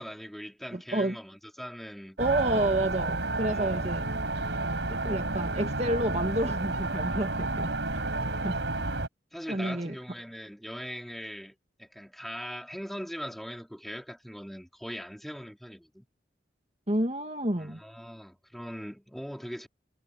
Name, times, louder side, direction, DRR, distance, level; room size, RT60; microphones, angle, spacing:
voice 1, 0.0-2.2 3.4-4.1 9.3-16.0 17.6-19.7, equal, ahead, 2.8 m, -41 dB
voice 2, 0.7-1.2 2.2-4.1 4.9-8.0 8.4-8.6 9.5-9.9 16.9-17.8, right 1 dB, 35° right, 2.1 m, -30 dB
sound 1, 2.2-9.1, right 2 dB, 80° right, 4.5 m, -31 dB
head